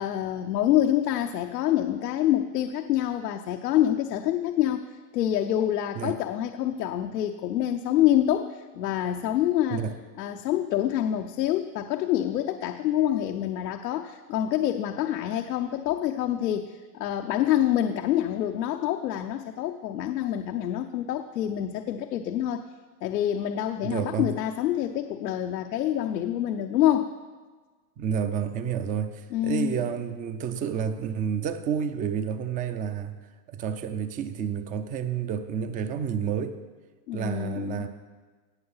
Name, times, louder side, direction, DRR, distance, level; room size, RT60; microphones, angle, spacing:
voice 1, 0.0-4.8 5.1-9.8 10.2-22.6 23.0-27.1 29.3-29.8 37.1-37.9, left 11 dB, 90° left, 5 dB, 0.8 m, -26 dB
voice 2, 23.8-24.4 28.0-33.2 33.5-36.6 37.1-37.9, right 7 dB, 20° right, 10 dB, 0.4 m, -30 dB
18.0 x 6.8 x 5.6 m, 1.4 s
supercardioid pair, 135°, 47 cm